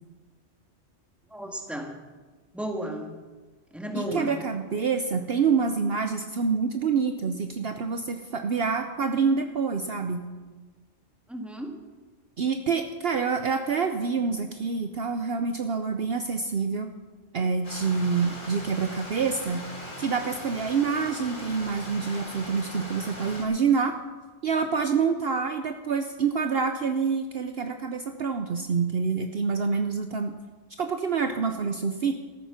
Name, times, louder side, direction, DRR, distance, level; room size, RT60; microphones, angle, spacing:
voice 1, 1.3-2.0 2.5-3.2 3.7-4.4 11.3-11.8, equal, ahead, 3 dB, 1.8 m, -33 dB
voice 2, 3.9-10.3 12.4-16.9 17.3-19.6 20.0-24.0 24.4-30.3 30.8-32.2, right 5 dB, 55° right, 6 dB, 1.0 m, -27 dB
Stream, 17.6-23.4, left 1 dB, 40° left, 2.9 m, -40 dB
14.0 x 13.5 x 5.8 m, 1.3 s
omnidirectional pair, 1.3 m